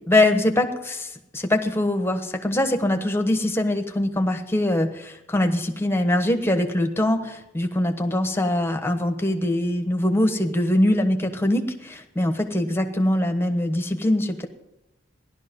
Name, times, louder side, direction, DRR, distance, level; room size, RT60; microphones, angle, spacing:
voice 1, 0.1-14.5, left 1 dB, 10° left, 6 dB, 1.1 m, -23 dB
17.0 x 11.5 x 5.3 m, 0.92 s
head